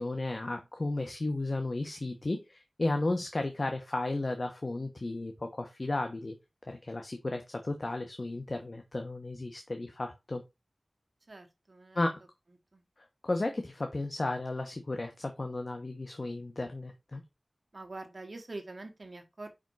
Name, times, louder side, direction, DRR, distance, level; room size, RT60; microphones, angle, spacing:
voice 1, 0.0-6.3 6.7-10.4 11.9-12.2 13.2-17.2, left 2 dB, 60° left, 1.0 m, -34 dB
voice 2, 11.3-12.2 12.7-12.8 17.7-19.5, right 2 dB, 60° right, 1.5 m, -45 dB
5.2 x 5.0 x 4.7 m
wide cardioid pair, 45°, 0 cm